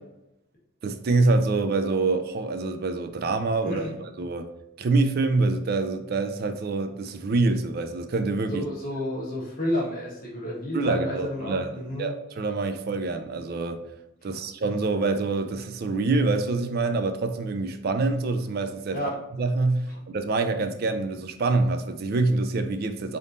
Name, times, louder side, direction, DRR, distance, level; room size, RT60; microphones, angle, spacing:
voice 1, 0.8-4.5 4.8-8.7 10.7-11.7 12.0-13.8 14.2-19.0 19.4-23.2, right 3 dB, 50° right, 0.4 m, -26 dB
voice 2, 3.6-3.9 8.5-12.1 14.2-14.4 18.9-19.2 19.9-20.0, left 1 dB, 45° left, 1.3 m, -31 dB
4.0 x 3.5 x 2.5 m
head